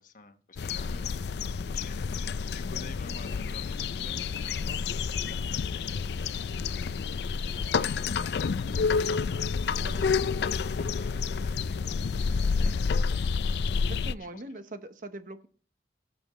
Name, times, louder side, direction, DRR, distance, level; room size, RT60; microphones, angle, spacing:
voice 1, 0.0-12.0 12.4-13.3 14.2-14.6, left 3 dB, 50° left, 7 dB, 1.2 m, -50 dB
sound 1, 0.6-14.1, left 5 dB, 65° left, 0.4 m, -29 dB
voice 2, 13.9-15.5, right 2 dB, 50° right, 9 dB, 1.0 m, -42 dB
17.5 x 7.1 x 3.1 m, 0.42 s
head